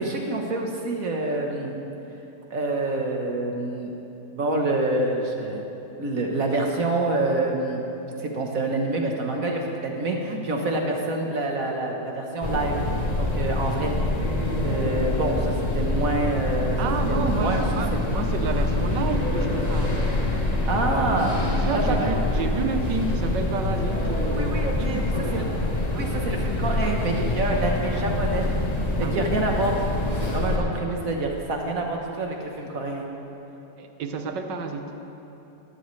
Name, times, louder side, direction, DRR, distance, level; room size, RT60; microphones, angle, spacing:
voice 1, 0.0-1.7 2.5-3.9 4.3-5.6 6.0-7.8 8.2-12.8 13.2-13.9 14.6-16.8 17.1-17.6 17.9-18.0 20.7-21.4 21.7-22.1 24.3-25.0 25.3-25.4 25.9-28.5 29.0-33.0, right 2 dB, 55° right, 1 dB, 1.4 m, -27 dB
sound 1, 12.4-30.6, left 2 dB, 25° left, 1.1 m, -25 dB
voice 2, 16.8-20.2 21.5-25.5 29.0-29.3 33.8-34.9, right 4 dB, 90° right, 5 dB, 1.6 m, -30 dB
18.5 x 12.5 x 3.2 m, 3.0 s
omnidirectional pair, 1.8 m